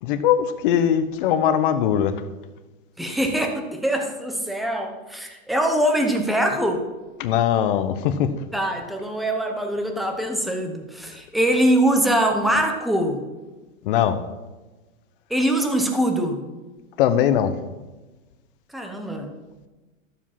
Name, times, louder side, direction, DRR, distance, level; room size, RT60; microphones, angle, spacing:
voice 1, 0.0-2.1 7.2-8.3 13.8-14.2 17.0-17.5, left 9 dB, 40° left, 11 dB, 0.9 m, -20 dB
voice 2, 3.0-6.9 8.5-13.2 15.3-16.4 18.7-19.3, right 1 dB, ahead, 4 dB, 0.6 m, -23 dB
13.5 x 7.5 x 5.7 m, 1.2 s
supercardioid pair, 160°, 40 cm